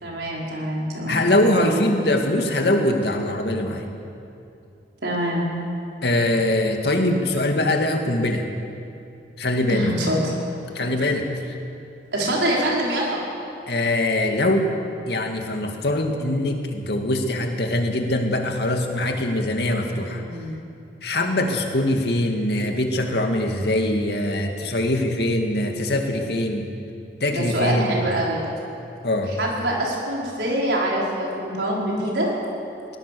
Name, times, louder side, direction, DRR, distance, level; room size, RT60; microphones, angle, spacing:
voice 1, 0.0-1.2 5.0-5.5 9.7-10.3 12.1-13.2 19.7-20.6 27.3-28.4 29.4-32.3, right 1 dB, 80° right, -3 dB, 5.1 m, -25 dB
voice 2, 1.1-3.9 6.0-8.5 9.4-10.1 10.6-11.6 13.7-14.8 15.1-20.2 21.0-26.7 27.2-28.0 29.0-29.3, left 1 dB, 70° left, 3 dB, 2.2 m, -22 dB
21.0 x 18.5 x 7.0 m, 2.7 s
head